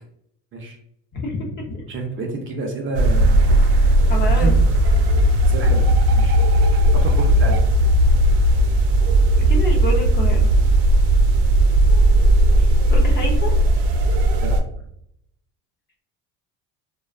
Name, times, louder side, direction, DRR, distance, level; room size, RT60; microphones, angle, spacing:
voice 1, 1.1-1.8 4.1-4.5 9.5-10.5 12.5-13.5, left 3 dB, 30° left, 0 dB, 0.4 m, -28 dB
voice 2, 1.9-3.7 4.1-4.6 5.5-6.4 7.0-7.6 14.4-14.6, right 2 dB, 35° right, 1 dB, 0.4 m, -29 dB
sound 1, 2.9-14.6, right 1 dB, 80° right, 0.6 m, -16 dB
2.5 x 2.1 x 2.3 m, 0.71 s
cardioid pair, 140°, 38 cm